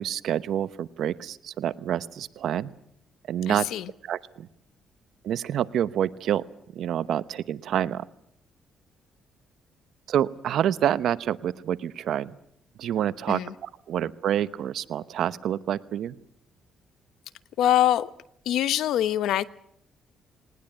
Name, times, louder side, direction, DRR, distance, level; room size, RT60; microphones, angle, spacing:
voice 1, 0.0-2.7 3.3-3.6 4.1-4.5 5.2-6.4 6.7-8.0 10.1-12.4 12.8-16.2, right 10 dB, 75° right, 14 dB, 0.9 m, -27 dB
voice 2, 3.5-3.9 13.3-13.5 17.6-18.1 18.5-19.5, left 12 dB, 80° left, 15 dB, 1.0 m, -24 dB
19.5 x 19.0 x 9.2 m, 0.72 s
cardioid pair, 90°, 0 cm